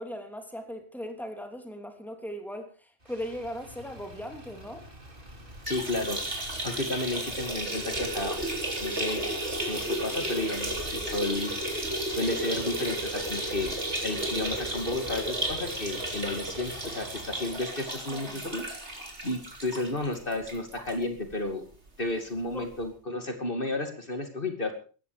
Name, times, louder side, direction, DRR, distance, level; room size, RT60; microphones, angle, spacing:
voice 1, 0.0-4.9 17.9-18.5 22.5-22.7, equal, ahead, 2.9 m, -39 dB
Motor vehicle (road), 3.0-17.6, equal, 50° right, 3.4 m, -46 dB
sound 1, 5.6-21.0 21.3-21.4 21.7-21.8 22.8-22.9, right 1 dB, 90° right, 4.0 m, -33 dB
voice 2, 5.7-6.2 6.6-8.4 8.8-9.2 9.7-11.5 11.8-13.7 14.0-18.6 19.2-21.6 22.0-24.7, left 2 dB, 55° left, 2.8 m, -32 dB
17.5 x 14.5 x 5.0 m
omnidirectional pair, 1.1 m